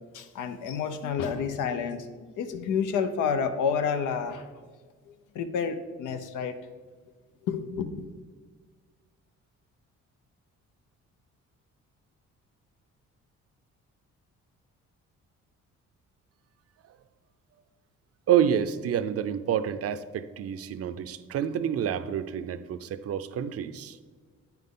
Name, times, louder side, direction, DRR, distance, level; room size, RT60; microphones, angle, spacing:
voice 1, 0.1-4.5 5.1-6.6 7.5-8.1, left 6 dB, 85° left, 9 dB, 0.7 m, -30 dB
voice 2, 18.3-24.0, right 9 dB, 50° right, 13 dB, 0.5 m, -28 dB
8.8 x 5.8 x 3.7 m, 1.5 s
cardioid pair, 90°, 30 cm